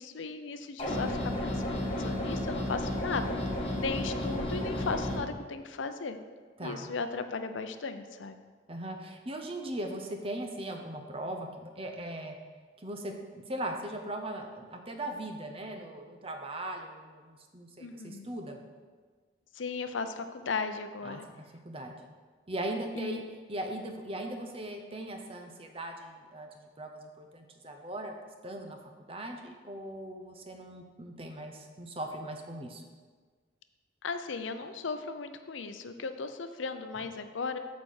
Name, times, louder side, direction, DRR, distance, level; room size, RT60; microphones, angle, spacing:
voice 1, 0.0-3.4 3.8-6.2 6.6-8.4 17.8-18.3 19.5-21.2 22.9-23.2 34.0-37.6, left 4 dB, 90° left, 9 dB, 0.6 m, -36 dB
sound 1, 0.8-5.2, left 1 dB, 30° left, 1.7 m, -32 dB
voice 2, 8.7-12.3 12.8-18.6 21.0-21.2 21.6-22.0 22.5-23.2 23.5-28.1 28.4-32.8, right 1 dB, 30° right, 4 dB, 0.8 m, -39 dB
8.9 x 4.2 x 6.4 m, 1.5 s
head